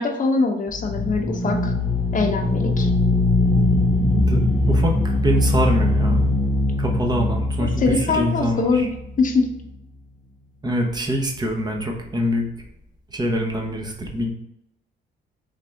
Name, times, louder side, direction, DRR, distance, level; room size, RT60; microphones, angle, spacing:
voice 1, 0.0-1.7 2.1-2.9 7.6-8.9 9.2-9.5, left 3 dB, 40° left, 3 dB, 0.9 m, -22 dB
sound 1, 0.7-9.4, left 2 dB, 10° left, 0.7 m, -21 dB
voice 2, 4.3-6.2 6.8-8.9 10.6-12.4 13.1-14.3, equal, 20° right, 1 dB, 1.0 m, -24 dB
3.7 x 3.3 x 3.4 m, 0.81 s
cardioid pair, 90°, 20 cm